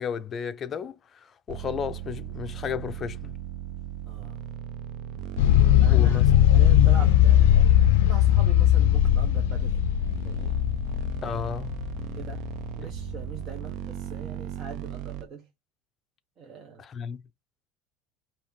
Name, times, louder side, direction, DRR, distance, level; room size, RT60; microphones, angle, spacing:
voice 1, 0.0-3.4 5.9-6.3 11.2-11.7 16.8-17.2, left 7 dB, 30° left, 0.6 m, -33 dB
sound 1, 1.5-15.2, right 11 dB, 55° right, 0.6 m, -37 dB
voice 2, 4.0-4.4 5.8-9.8 10.2-10.7 12.1-15.5 16.4-16.8, right 6 dB, 35° right, 1.0 m, -42 dB
sound 2, 5.4-12.7, left 12 dB, 85° left, 0.4 m, -19 dB
5.3 x 2.8 x 3.1 m
supercardioid pair, 140°, 0 cm